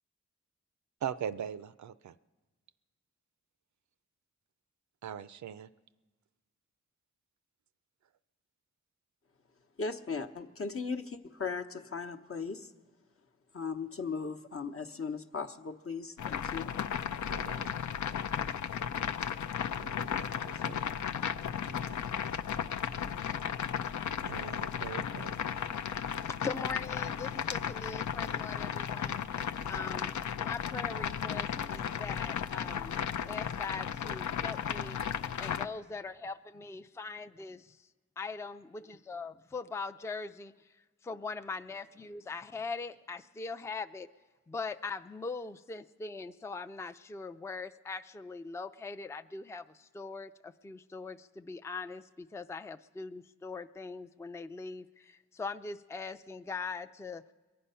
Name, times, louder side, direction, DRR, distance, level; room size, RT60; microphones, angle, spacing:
voice 1, 1.0-2.1 5.0-5.7 17.3-17.8 19.8-21.0 21.7-22.1 24.2-25.3, right 8 dB, 75° right, 14 dB, 0.5 m, -41 dB
voice 2, 9.8-12.7 13.5-16.7, left 4 dB, 50° left, 6 dB, 0.9 m, -37 dB
sound 1, 16.2-35.7, left 8 dB, 80° left, 0.5 m, -35 dB
voice 3, 26.3-29.2 29.7-30.1 30.4-33.0 33.3-35.0 35.4-37.8 38.2-40.5 41.0-44.1 44.5-57.2, left 4 dB, 10° left, 9 dB, 0.4 m, -41 dB
22.5 x 8.6 x 5.6 m, 1.3 s
cardioid pair, 50°, 29 cm